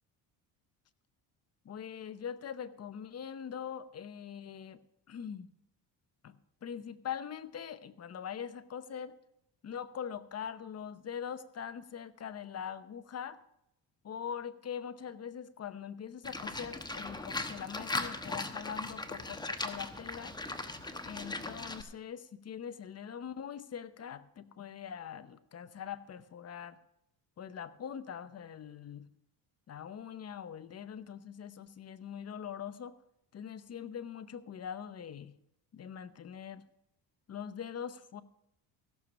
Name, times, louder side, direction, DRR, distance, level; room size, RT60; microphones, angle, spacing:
voice 1, 1.6-4.8 5.1-5.5 6.2-6.3 6.6-9.2 9.6-13.4 14.0-20.4 21.0-26.8 27.4-29.0 29.7-33.0 33.3-35.3 35.7-36.6 37.3-38.2, left 8 dB, 35° left, 13 dB, 0.8 m, -42 dB
Livestock farm animals working animals, 16.2-21.8, left 2 dB, 10° left, 1.0 m, -39 dB
15.5 x 6.9 x 6.0 m, 0.80 s
cardioid pair, 100°, 43 cm